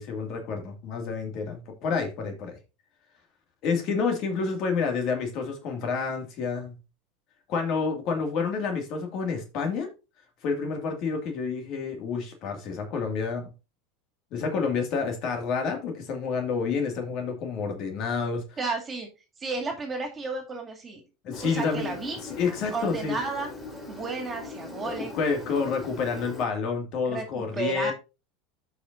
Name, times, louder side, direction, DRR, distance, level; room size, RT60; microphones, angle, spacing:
voice 1, 0.0-2.6 3.6-6.7 7.5-9.9 10.4-13.5 14.3-18.6 21.2-21.9 22.4-23.2 24.8-27.9, left 5 dB, 55° left, 2.2 m, -29 dB
voice 2, 18.6-19.1 19.4-21.0 21.4-22.2 22.7-23.5 23.9-25.1 27.0-27.9, right 4 dB, 25° right, 2.4 m, -32 dB
Engine, 21.3-26.5, left 2 dB, 15° left, 4.2 m, -41 dB
13.5 x 5.2 x 2.7 m
supercardioid pair, 105°, 0 cm